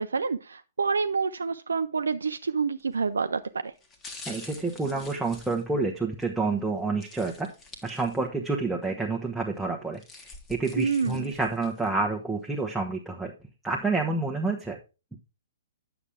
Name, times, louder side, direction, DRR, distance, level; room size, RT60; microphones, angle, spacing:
voice 1, 0.0-3.7 10.8-11.3, right 5 dB, 70° right, 0.5 m, -28 dB
sound 1, 2.8-3.1 3.8-6.3 7.0-8.5 8.8-8.9 9.7-11.9 12.4-12.5, left 3 dB, 20° left, 1.5 m, -47 dB
voice 2, 4.3-7.5 7.8-10.0 10.5-13.3 13.6-14.8, right 3 dB, 5° right, 1.2 m, -28 dB
9.7 x 6.9 x 3.6 m
figure-of-eight pair, 115°, 0 cm